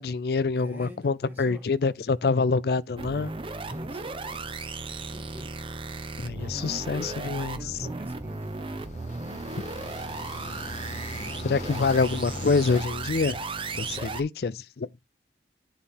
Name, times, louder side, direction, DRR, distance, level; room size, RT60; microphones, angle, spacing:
voice 1, 0.0-3.3 6.2-7.6 11.4-13.4 13.8-14.9, left 4 dB, 60° left, 0.4 m, -26 dB
voice 2, 0.5-1.7 3.7-4.5 4.9-5.6 7.2-8.9, equal, 10° right, 1.8 m, -45 dB
sound 1, 3.0-13.8, left 1 dB, 15° left, 2.9 m, -60 dB
sound 2, 3.0-14.2, right 3 dB, 30° right, 0.7 m, -35 dB
sound 3, 8.2-12.8, left 3 dB, 40° left, 0.9 m, -42 dB
9.6 x 4.1 x 3.5 m
head